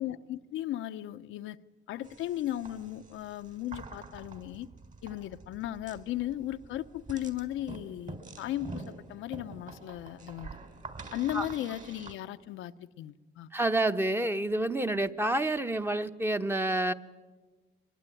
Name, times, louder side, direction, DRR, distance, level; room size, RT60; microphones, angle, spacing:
voice 1, 0.0-1.6 1.9-4.7 5.0-10.5 11.1-13.5, left 13 dB, 90° left, 0.8 m, -36 dB
sound 1, 2.0-12.1, right 3 dB, 40° right, 4.0 m, -46 dB
voice 2, 13.5-16.9, right 1 dB, 10° right, 1.0 m, -28 dB
24.0 x 22.0 x 9.1 m
cardioid pair, 90°, 20 cm